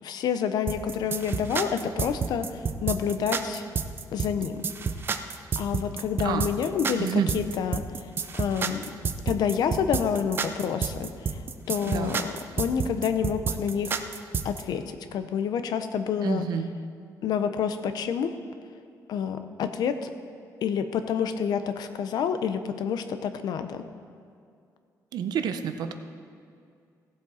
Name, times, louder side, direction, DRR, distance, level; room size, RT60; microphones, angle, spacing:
voice 1, 0.0-3.7 4.1-4.7 5.0-5.2 5.6-8.9 9.3-11.4 11.7-14.1 14.4-16.5 17.2-18.3 19.1-20.1 20.6-23.8, left 7 dB, 75° left, 9 dB, 0.7 m, -28 dB
sound 1, 0.7-14.6, right 5 dB, 30° right, 0.5 m, -30 dB
voice 2, 7.0-7.3 11.9-12.2 16.2-16.7 25.1-25.9, right 8 dB, 75° right, 8 dB, 0.7 m, -29 dB
16.5 x 7.5 x 4.2 m, 2.3 s
cardioid pair, 170°, 7 cm